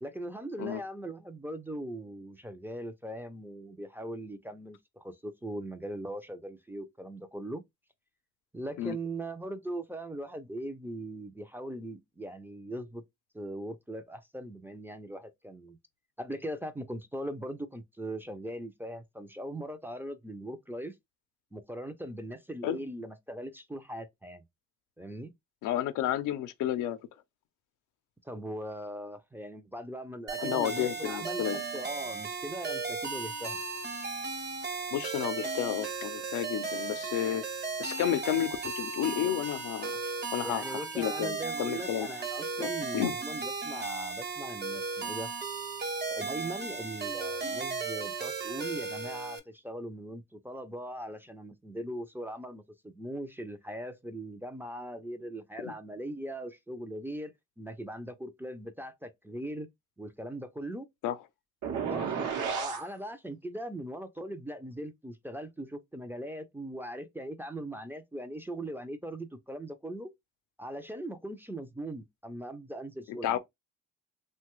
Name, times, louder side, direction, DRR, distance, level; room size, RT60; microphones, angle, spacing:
voice 1, 0.0-7.6 8.5-13.0 13.3-15.8 16.2-20.9 21.5-24.4 25.0-25.3 28.2-33.6 40.4-45.3 46.1-59.7 60.0-60.9 61.7-70.1 70.6-73.4, right 1 dB, 5° right, 0.4 m, -40 dB
voice 2, 25.6-27.0 30.4-31.6 34.9-37.5 37.8-39.9 40.3-42.1 42.6-43.2 55.6-55.7 61.0-61.2 73.1-73.4, left 11 dB, 85° left, 0.5 m, -31 dB
sound 1, 30.3-49.4, right 4 dB, 35° right, 0.7 m, -36 dB
sound 2, 61.6-62.9, right 7 dB, 75° right, 0.8 m, -32 dB
3.0 x 2.2 x 2.9 m
cardioid pair, 90°, 30 cm